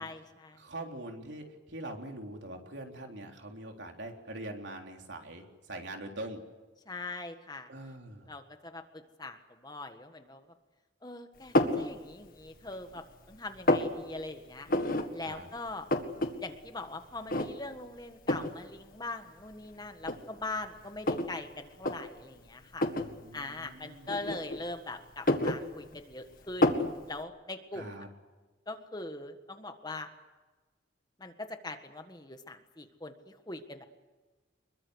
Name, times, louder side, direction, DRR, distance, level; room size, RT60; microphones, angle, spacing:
voice 1, 0.0-0.6 6.8-7.7 8.3-10.4 11.0-14.7 15.1-15.9 16.4-22.8 23.3-26.7 27.1-28.0 28.7-30.1 31.2-33.9, left 2 dB, 20° left, 7 dB, 1.6 m, -42 dB
voice 2, 0.5-6.4 7.7-8.3 15.2-15.5 22.9-24.1 27.7-28.1, right 1 dB, 70° right, 3 dB, 3.6 m, -43 dB
sound 1, 11.5-11.9 12.4-13.0 13.3-13.9 14.7-15.1 15.4-15.5 15.7-16.3 16.6-16.7 17.3-17.8 18.3-18.5 19.4-19.5 20.0-21.3 21.7-22.0 22.7-23.1 24.1-24.7 25.1-26.1 26.6-26.9, left 1 dB, 45° left, 1.9 m, -28 dB
25.5 x 22.0 x 8.1 m, 1.3 s
head